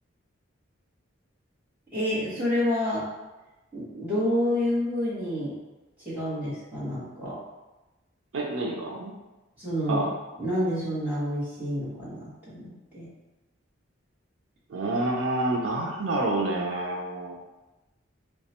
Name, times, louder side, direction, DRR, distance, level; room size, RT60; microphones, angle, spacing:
voice 1, 1.9-3.0 3.7-5.5 6.0-7.4 9.6-10.1 10.4-13.1, left 1 dB, 10° right, -11 dB, 1.5 m, -28 dB
voice 2, 8.3-9.1 9.9-10.1 14.7-17.4, right 2 dB, 90° right, 0 dB, 0.6 m, -28 dB
2.9 x 2.3 x 4.2 m, 1.1 s
head